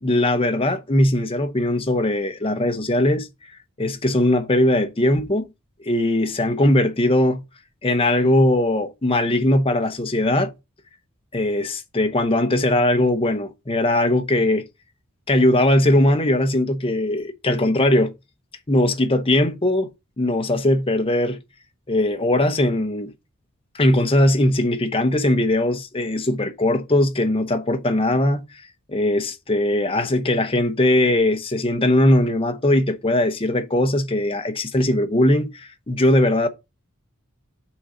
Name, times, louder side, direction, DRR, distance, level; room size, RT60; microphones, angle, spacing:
voice 1, 0.0-3.3 3.8-5.4 5.8-7.4 7.8-10.5 11.3-14.7 15.3-18.1 18.7-19.9 20.2-21.4 21.9-23.1 23.7-28.4 28.9-36.5, left 1 dB, 25° left, 0.8 m, -20 dB
6.1 x 3.8 x 5.4 m
head